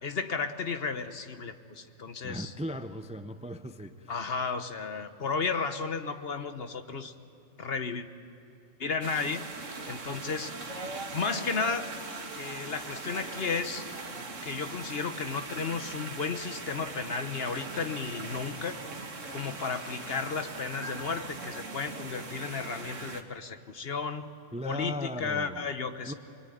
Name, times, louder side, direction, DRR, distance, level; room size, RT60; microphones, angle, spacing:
voice 1, 0.0-2.5 4.1-7.1 7.6-8.1 8.8-9.4 9.9-10.5 11.1-11.9 12.3-13.9 14.4-18.8 19.3-24.3 24.6-26.1, left 5 dB, 55° left, 9 dB, 1.3 m, -33 dB
voice 2, 2.2-4.1 24.5-25.7 26.0-26.1, equal, 5° right, 9 dB, 0.6 m, -37 dB
sound 1, 9.0-23.2, right 3 dB, 75° right, 2.0 m, -40 dB
25.0 x 22.5 x 9.3 m, 2.7 s
omnidirectional pair, 1.3 m